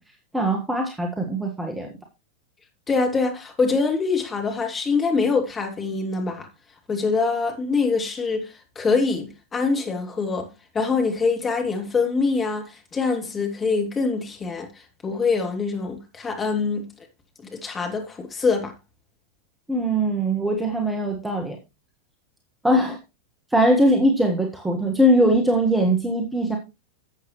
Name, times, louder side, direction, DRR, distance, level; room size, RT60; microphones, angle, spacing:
voice 1, 0.3-1.9 19.7-21.6 22.6-23.0 23.5-26.6, right 1 dB, 5° right, 1.6 m, -21 dB
voice 2, 2.9-6.5 6.9-10.5 10.7-16.8 17.4-18.7, left 4 dB, 20° left, 2.6 m, -24 dB
11.5 x 8.1 x 3.1 m
figure-of-eight pair, 90°, 0 cm